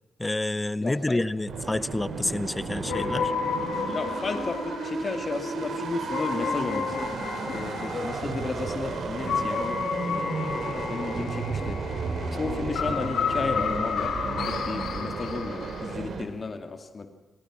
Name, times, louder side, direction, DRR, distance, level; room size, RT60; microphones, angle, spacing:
voice 1, 0.2-3.3, left 2 dB, 20° left, 16 dB, 0.9 m, -28 dB
voice 2, 0.8-1.2 3.9-11.8 12.3-17.1, left 3 dB, 45° left, 7 dB, 2.2 m, -33 dB
sound 1, 1.5-16.3, right 4 dB, 75° right, 3.2 m, -33 dB
sound 2, 2.9-15.9, left 6 dB, 85° left, 2.5 m, -32 dB
27.5 x 20.0 x 6.2 m, 1.1 s
cardioid pair, 60°, 0 cm